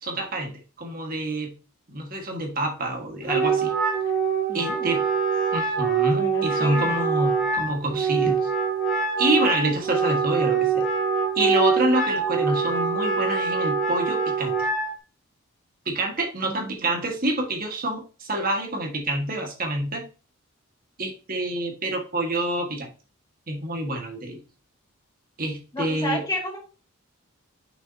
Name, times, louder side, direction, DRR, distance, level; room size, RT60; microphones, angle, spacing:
voice 1, 0.0-1.5 1.9-3.7 4.5-5.0 5.5-8.5 9.2-10.9 11.3-14.6 15.8-20.0 21.0-22.9 23.5-24.4 25.4-26.2, right 1 dB, 40° right, 2 dB, 1.6 m, -27 dB
Wind instrument woodwind instrument, 3.2-14.9, right 5 dB, ahead, 1.9 m, -24 dB
voice 2, 4.5-4.9 6.2-7.0 16.5-16.7 25.7-26.6, left 1 dB, 15° left, -2 dB, 2.3 m, -32 dB
6.4 x 6.3 x 2.8 m, 0.35 s
head